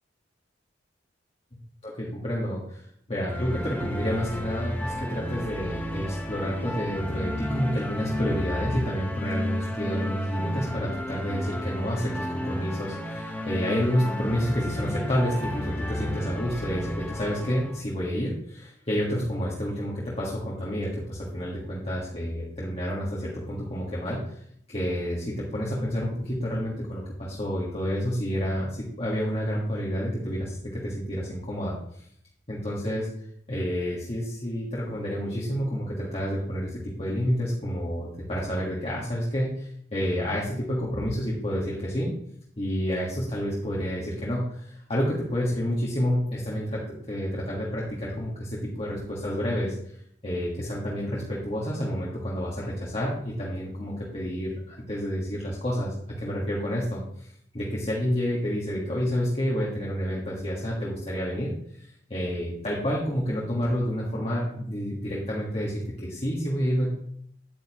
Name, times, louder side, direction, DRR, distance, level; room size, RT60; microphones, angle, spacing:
voice 1, 1.5-2.8 3.1-24.4 24.7-32.0 32.5-33.1 33.5-42.1 42.6-50.0 50.2-61.5 61.8-66.9, equal, 30° left, -5 dB, 1.6 m, -29 dB
sound 1, 3.3-17.8, left 1 dB, 10° left, 0.9 m, -33 dB
9.1 x 9.0 x 3.0 m, 0.68 s
head